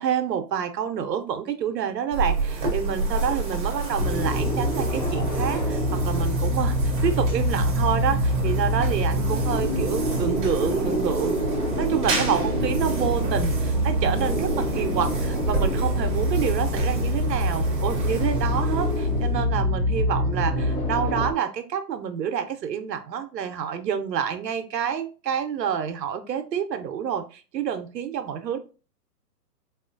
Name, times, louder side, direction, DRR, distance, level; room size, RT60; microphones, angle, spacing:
voice 1, 0.0-6.8 7.0-11.4 11.7-28.6, right 8 dB, 85° right, 9 dB, 0.8 m, -28 dB
sound 1, 2.1-19.5, right 3 dB, 30° right, 0.8 m, -31 dB
sound 2, 4.0-21.3, equal, 30° left, 0.9 m, -25 dB
4.2 x 2.4 x 2.5 m, 0.34 s
hypercardioid pair, 160°, 49 cm